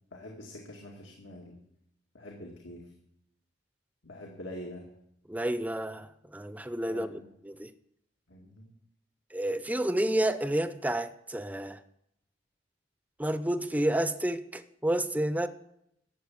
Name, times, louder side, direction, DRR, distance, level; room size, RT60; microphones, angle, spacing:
voice 1, 0.1-1.6 2.1-2.8 4.0-4.9 6.9-7.3 8.3-8.7, left 1 dB, 90° left, 2.2 m, -45 dB
voice 2, 5.3-7.7 9.3-11.8 13.2-15.5, right 1 dB, 10° right, 0.5 m, -30 dB
13.0 x 7.5 x 8.4 m
head